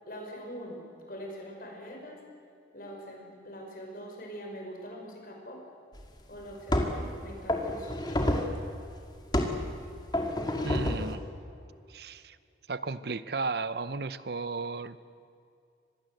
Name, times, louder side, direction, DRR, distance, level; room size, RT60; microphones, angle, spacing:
voice 1, 0.1-0.8 1.1-2.2 2.7-5.7 6.3-8.3, equal, 50° left, 1 dB, 5.6 m, -43 dB
sound 1, 6.0-6.1 6.7-7.1 7.5-8.6 9.3-9.6 10.1-11.1, left 1 dB, 25° left, 2.2 m, -28 dB
voice 2, 10.6-11.2 11.9-12.4 12.7-15.0, right 4 dB, 55° right, 15 dB, 0.7 m, -34 dB
25.5 x 20.5 x 7.9 m, 2.5 s
head